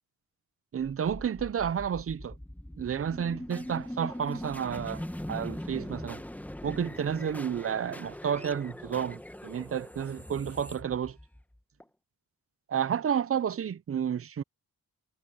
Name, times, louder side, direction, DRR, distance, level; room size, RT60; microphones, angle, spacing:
voice 1, 0.7-2.4 2.8-5.0 5.3-6.2 6.6-11.2 12.7-14.4, right 8 dB, 35° right, 0.6 m, -31 dB
sound 1, 1.0-11.8, left 1 dB, 5° left, 1.0 m, -41 dB
cardioid pair, 90°, 38 cm